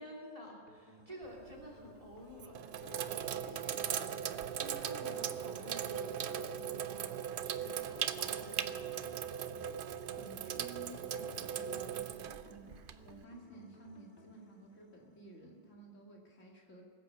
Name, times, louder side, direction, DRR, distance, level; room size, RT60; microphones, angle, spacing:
voice 1, 0.0-9.2, equal, 25° right, -2 dB, 3.1 m, -51 dB
sound 1, 0.7-15.7, left 1 dB, 50° left, 2.0 m, -60 dB
Sink (filling or washing), 1.2-1.7 2.3-13.2, right 9 dB, 60° right, 0.6 m, -39 dB
voice 2, 10.1-12.7 13.0-16.8, right 2 dB, 75° left, -1 dB, 2.5 m, -54 dB
20.0 x 8.4 x 6.6 m, 2.1 s
omnidirectional pair, 1.3 m